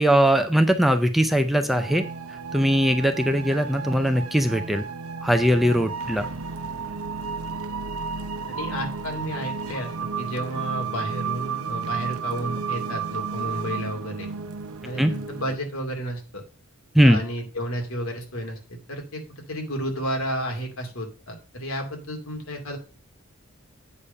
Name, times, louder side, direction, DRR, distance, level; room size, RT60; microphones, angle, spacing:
voice 1, 0.0-2.1 2.5-4.8 5.2-6.3 15.0-15.1 16.9-17.2, equal, ahead, 7 dB, 0.5 m, -20 dB
sound 1, 1.7-15.6, right 5 dB, 80° right, 0.8 m, -32 dB
voice 2, 8.6-14.3 14.8-16.4 17.0-22.8, equal, 70° left, 3 dB, 2.5 m, -32 dB
8.4 x 5.4 x 5.3 m, 0.34 s
head